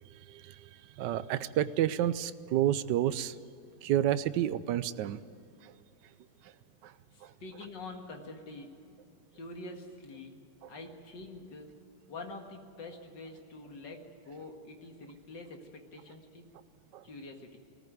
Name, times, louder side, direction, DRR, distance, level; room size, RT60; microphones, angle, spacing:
voice 1, 1.0-3.3 3.8-5.2 16.9-17.0, right 12 dB, 70° right, 15 dB, 1.1 m, -29 dB
voice 2, 7.1-8.8 9.3-10.4 10.7-11.7 12.1-16.5 17.0-17.6, left 2 dB, 55° left, 3 dB, 2.5 m, -46 dB
20.0 x 14.5 x 9.3 m, 2.6 s
omnidirectional pair, 2.3 m